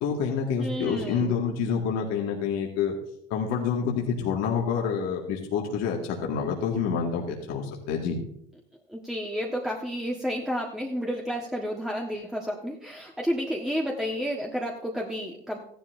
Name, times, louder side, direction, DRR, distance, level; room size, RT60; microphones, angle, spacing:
voice 1, 0.0-3.0 3.3-8.2, left 6 dB, 60° left, -1 dB, 2.0 m, -27 dB
voice 2, 0.6-1.4 8.9-15.6, equal, ahead, -1 dB, 1.4 m, -31 dB
14.5 x 11.0 x 2.7 m, 0.73 s
hypercardioid pair, 90°, 29 cm